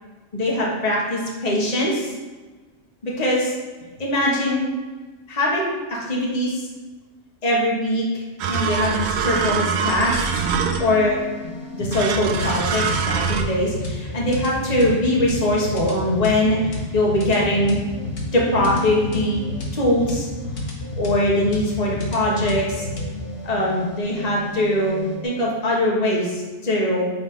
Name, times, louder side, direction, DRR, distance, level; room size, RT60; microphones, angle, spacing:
voice 1, 0.3-2.1 3.0-3.5 4.0-4.7 5.3-6.6 7.4-8.1 8.5-10.2 10.8-11.2 11.7-16.6 16.9-17.8 18.3-19.4 19.7-20.3 21.0-22.9 23.4-27.1, left 1 dB, 30° left, -4 dB, 1.3 m, -22 dB
sound 1, 8.4-11.1 11.9-13.4, right 6 dB, 65° right, 0.8 m, -24 dB
sound 2, 9.9-25.2, left 1 dB, 50° left, 1.3 m, -31 dB
7.6 x 4.0 x 3.6 m, 1.3 s
omnidirectional pair, 1.4 m